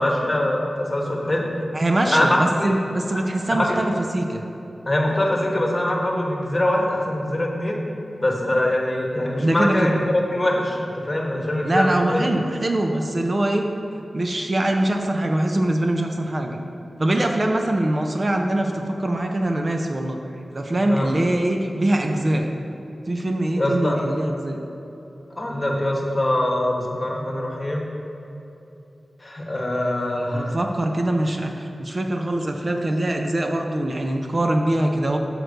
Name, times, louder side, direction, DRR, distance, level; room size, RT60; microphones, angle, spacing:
voice 1, 0.0-1.5 2.0-2.7 3.5-3.6 4.9-7.8 8.2-12.2 20.8-21.1 23.6-24.1 25.4-27.9 29.2-30.6, left 1 dB, 25° left, -1 dB, 1.1 m, -23 dB
voice 2, 1.7-4.4 9.4-9.7 11.6-13.7 13.9-16.6 17.0-20.2 20.5-22.5 23.1-24.6 30.3-35.2, right 1 dB, 40° right, 3 dB, 0.5 m, -23 dB
6.6 x 4.5 x 6.5 m, 2.9 s
wide cardioid pair, 100°, 0 cm